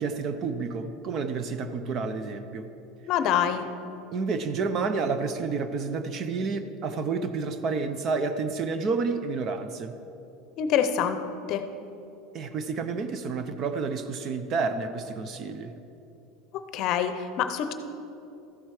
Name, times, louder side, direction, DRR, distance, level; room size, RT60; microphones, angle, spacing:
voice 1, 0.0-2.7 4.1-9.9 12.3-15.7, right 4 dB, 35° right, 10 dB, 0.6 m, -30 dB
voice 2, 3.1-3.6 10.6-11.2 11.5-11.6 16.5-17.7, left 9 dB, 45° left, 9 dB, 0.7 m, -26 dB
13.5 x 7.8 x 4.8 m, 2.8 s
supercardioid pair, 150°, 0 cm